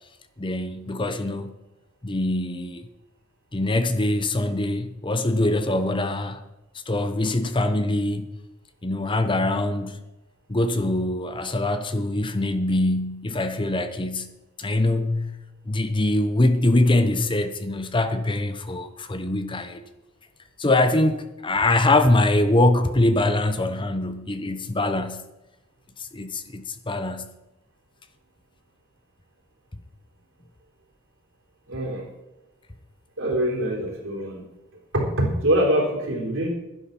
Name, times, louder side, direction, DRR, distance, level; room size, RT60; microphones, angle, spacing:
voice 1, 0.4-1.5 2.0-2.9 3.5-6.4 6.9-8.3 8.8-10.0 10.5-14.3 14.6-15.4 15.7-19.8 20.6-25.3 26.0-27.3, left 2 dB, 25° left, 0.8 m, -23 dB
voice 2, 31.7-32.1 33.2-34.4 34.9-36.5, right 1 dB, 65° right, 3.7 m, -24 dB
12.0 x 10.0 x 6.0 m
head